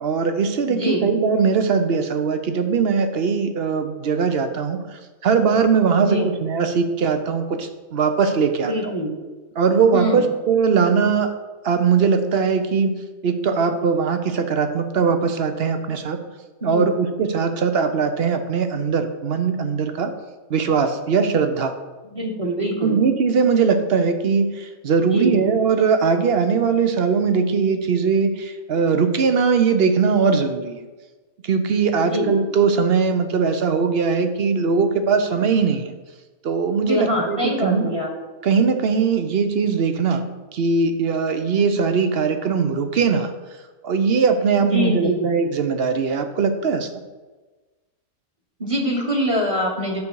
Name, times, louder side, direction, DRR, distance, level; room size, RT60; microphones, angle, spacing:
voice 1, 0.0-8.9 9.6-11.3 11.6-13.0 13.2-16.2 16.6-20.1 20.5-21.7 22.8-30.9 31.4-35.9 36.4-37.9 38.4-40.2 40.5-43.3 43.8-46.9, right 5 dB, 55° right, 8 dB, 0.8 m, -20 dB
voice 2, 0.7-1.1 6.0-6.3 8.6-9.1 9.9-10.3 16.6-16.9 22.0-23.0 25.1-25.4 32.0-32.3 36.9-38.1 44.6-45.3 48.6-50.0, equal, 25° right, 0 dB, 1.3 m, -24 dB
8.5 x 6.8 x 4.6 m, 1.3 s
omnidirectional pair, 1.5 m